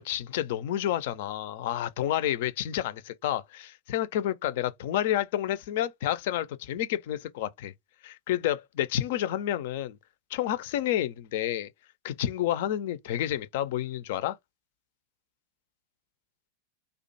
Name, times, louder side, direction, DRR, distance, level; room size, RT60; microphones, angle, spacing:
voice 1, 0.0-7.7 8.0-10.0 10.3-11.7 12.0-14.4, left 12 dB, 50° left, 0.3 m, -30 dB
2.4 x 2.2 x 2.6 m
figure-of-eight pair, 90°, 0 cm